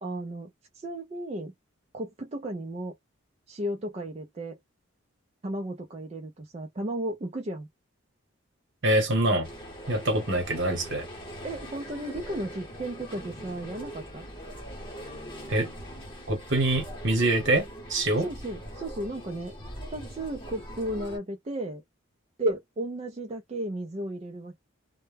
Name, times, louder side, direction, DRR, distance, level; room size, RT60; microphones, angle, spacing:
voice 1, 0.0-1.5 1.9-3.0 3.5-4.6 5.4-7.7 11.4-14.2 18.2-19.5 19.9-21.8 22.4-24.5, right 1 dB, 30° right, 0.4 m, -34 dB
voice 2, 8.8-9.5 9.9-11.0 15.5-15.7 16.3-18.2, right 1 dB, 60° right, 1.0 m, -25 dB
sound 1, 9.4-21.2, equal, 25° left, 0.9 m, -42 dB
2.1 x 2.1 x 3.3 m
head